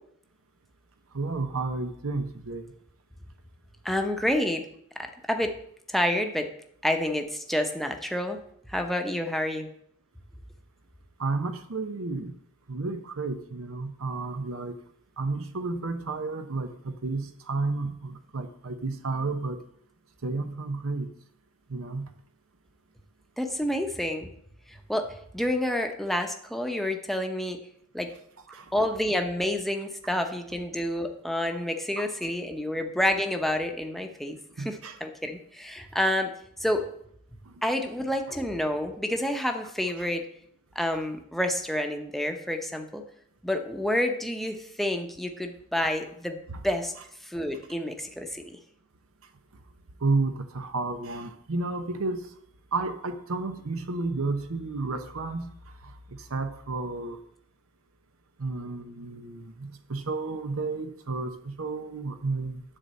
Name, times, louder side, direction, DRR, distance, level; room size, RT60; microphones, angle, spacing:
voice 1, 1.1-2.7 11.2-12.4 12.7-14.8 15.2-19.6 20.2-21.1 21.7-22.1 28.5-28.7 32.0-32.1 34.6-35.0 38.3-38.4 50.0-52.3 52.7-55.5 55.8-57.2 58.4-62.6, right 3 dB, 75° right, 7 dB, 0.8 m, -31 dB
voice 2, 3.8-4.7 5.0-5.5 5.9-6.5 6.8-8.4 8.7-9.7 23.4-24.3 24.7-27.6 27.9-28.1 28.7-36.3 36.6-36.9 37.6-40.2 40.7-43.0 43.4-46.9 47.2-48.6, left 1 dB, ahead, 4 dB, 0.9 m, -29 dB
10.0 x 4.0 x 7.5 m, 0.69 s
head